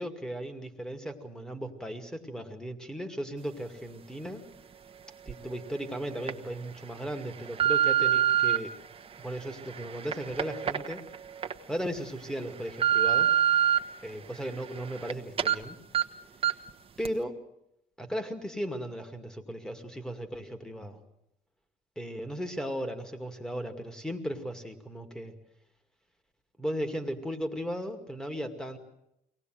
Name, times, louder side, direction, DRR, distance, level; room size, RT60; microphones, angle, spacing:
voice 1, 0.0-4.4 5.3-8.7 9.2-11.0 11.7-13.3 14.0-15.8 17.0-17.4 18.0-21.0 22.0-25.3 26.6-28.8, equal, 5° left, 7 dB, 2.3 m, -36 dB
sound 1, 5.3-5.4 6.0-6.3 6.9-8.6 9.2-11.5 12.0-12.1 12.5-13.8 14.2-15.1 15.4-15.6 15.9-16.0 16.4-16.7 17.0-17.1, right 10 dB, 35° right, 1.3 m, -26 dB
23.5 x 18.5 x 7.8 m, 0.82 s
cardioid pair, 110°, 17 cm